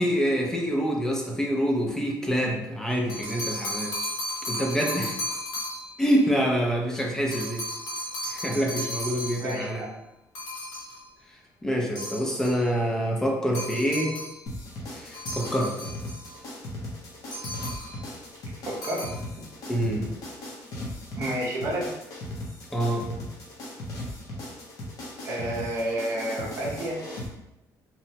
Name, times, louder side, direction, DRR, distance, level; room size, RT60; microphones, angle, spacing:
voice 1, 0.0-3.9 4.5-5.1 6.0-7.6 8.3-9.8 11.6-14.1 14.9-15.7 19.7-20.1 22.7-23.0, equal, 10° left, 0 dB, 0.4 m, -26 dB
sound 1, 2.9-6.0 7.3-9.7 10.3-11.0 12.0-12.6 13.5-14.4 15.1-16.4 17.3-18.0 18.7-19.2, equal, 85° left, 1.0 m, -35 dB
voice 2, 9.4-9.9 18.6-19.1 21.2-21.9 25.2-27.0, right 1 dB, 40° right, -3 dB, 0.7 m, -30 dB
sound 2, 14.5-27.3, left 1 dB, 55° left, 0.7 m, -38 dB
2.8 x 2.1 x 2.7 m, 0.90 s
cardioid pair, 175°, 7 cm